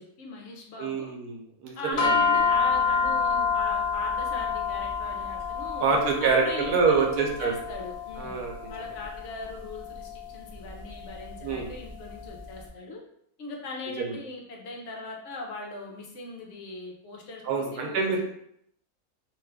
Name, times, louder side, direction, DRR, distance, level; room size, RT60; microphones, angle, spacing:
voice 1, 0.0-1.1 1.8-8.4 8.7-13.0 13.4-18.2, left 2 dB, 60° left, 0 dB, 0.9 m, -39 dB
voice 2, 0.8-2.2 5.8-7.5 8.2-8.6 11.4-11.7 14.0-14.2 17.4-18.3, right 5 dB, 85° right, 1 dB, 1.2 m, -26 dB
sound 1, 2.0-12.4, left 5 dB, 40° left, 0.4 m, -29 dB
2.9 x 2.3 x 3.3 m, 0.71 s
omnidirectional pair, 1.6 m